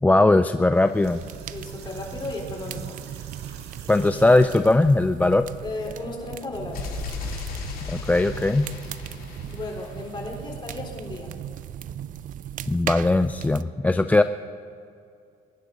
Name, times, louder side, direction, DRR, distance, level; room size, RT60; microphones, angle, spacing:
voice 1, 0.0-1.2 3.9-5.5 7.9-8.7 12.7-14.2, left 2 dB, 10° left, 9 dB, 0.3 m, -19 dB
sound 1, 0.6-4.9, right 7 dB, 80° right, 1.9 m, -48 dB
sound 2, 1.0-13.6, right 10 dB, 50° right, 0.5 m, -38 dB
voice 2, 1.5-3.0 3.9-4.2 5.6-6.9 9.4-11.3, left 2 dB, 30° left, -1 dB, 4.0 m, -35 dB
sound 3, 6.7-10.6, left 5 dB, 60° left, 3.7 m, -36 dB
23.5 x 10.5 x 4.0 m, 2.5 s
cardioid pair, 110°, 17 cm